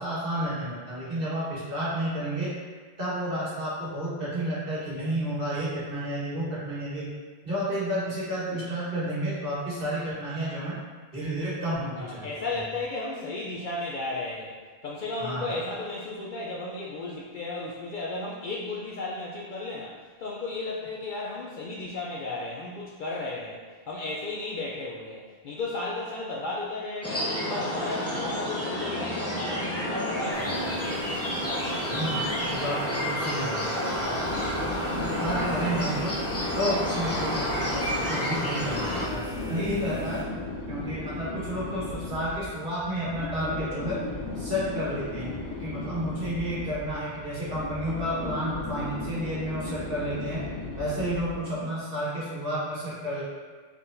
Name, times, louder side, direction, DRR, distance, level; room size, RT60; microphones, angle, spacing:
voice 1, 0.0-2.5 3.0-7.2 7.4-10.7 11.1-12.4 15.2-15.5 31.9-33.6 34.0-36.2 36.5-40.3 40.7-44.0 44.3-50.5 50.8-53.2, right 1 dB, 55° right, -8 dB, 1.5 m, -31 dB
voice 2, 12.0-14.6 14.8-31.0, left 2 dB, 60° left, -4 dB, 0.6 m, -34 dB
sound 1, 27.0-39.1, equal, 15° left, 0.6 m, -30 dB
sound 2, 30.3-40.2, equal, 35° left, 1.1 m, -41 dB
sound 3, 33.9-51.5, left 2 dB, 75° left, 1.0 m, -36 dB
4.4 x 3.8 x 2.6 m, 1.4 s
omnidirectional pair, 1.2 m